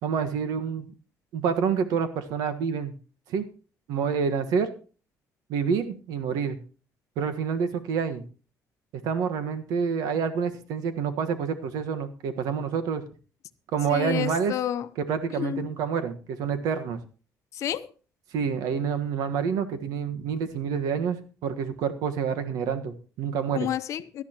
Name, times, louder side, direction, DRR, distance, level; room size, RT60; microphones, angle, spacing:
voice 1, 0.0-0.9 1.3-2.9 3.3-3.4 3.9-4.7 5.5-6.6 7.2-8.2 9.0-13.0 13.7-14.5 15.0-17.0 18.3-21.2 21.4-23.7, right 6 dB, 85° right, 1.5 m, -27 dB
voice 2, 13.9-14.9 15.3-15.7 17.5-17.9 23.5-24.2, left 11 dB, 55° left, 0.8 m, -30 dB
17.5 x 12.5 x 3.0 m
cardioid pair, 160°, 6 cm